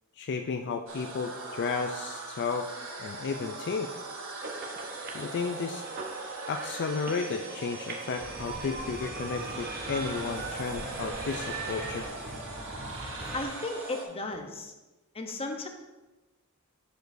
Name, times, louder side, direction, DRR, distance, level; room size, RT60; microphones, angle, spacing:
voice 1, 0.2-2.7 3.0-3.9 5.1-5.8 6.5-12.1, left 5 dB, 55° left, 5 dB, 0.4 m, -33 dB
sound 1, 0.9-14.0, right 3 dB, 65° right, 1.2 m, -41 dB
sound 2, 4.4-12.1, right 3 dB, 45° right, 0.8 m, -40 dB
sound 3, 8.2-13.4, equal, ahead, 1.4 m, -42 dB
voice 2, 13.3-14.7 15.1-15.7, left 2 dB, 25° left, 4 dB, 0.7 m, -35 dB
10.5 x 5.1 x 2.6 m, 1.1 s
head